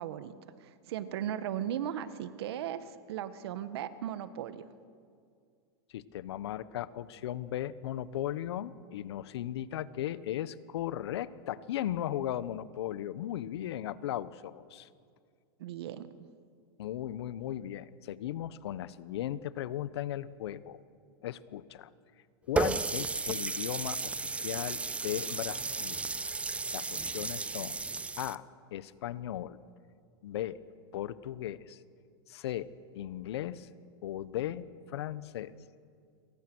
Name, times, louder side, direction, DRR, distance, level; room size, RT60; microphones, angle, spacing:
voice 1, 0.0-4.6 15.6-16.3, right 10 dB, 75° right, 12 dB, 1.6 m, -37 dB
voice 2, 5.9-14.9 16.8-20.8 21.2-21.9 22.5-26.0 26.7-27.8 28.2-28.4 28.7-29.6 30.2-30.6 30.9-31.8 32.3-32.7 32.9-33.7 34.0-35.5, left 12 dB, 75° left, 16 dB, 1.1 m, -37 dB
Water tap faucet, 22.6-28.3, right 3 dB, 10° right, 0.5 m, -34 dB
28.5 x 23.5 x 6.3 m, 2.2 s
hypercardioid pair, 125°, 14 cm